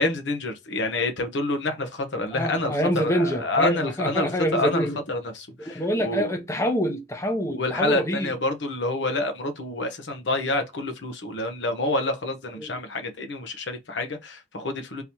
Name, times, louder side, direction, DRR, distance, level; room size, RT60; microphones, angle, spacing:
voice 1, 0.0-6.3 7.5-15.0, left 2 dB, 70° left, 0.8 m, -28 dB
voice 2, 2.3-5.0 5.6-8.3 12.6-12.8, equal, 15° left, 0.6 m, -26 dB
3.8 x 2.8 x 2.9 m
head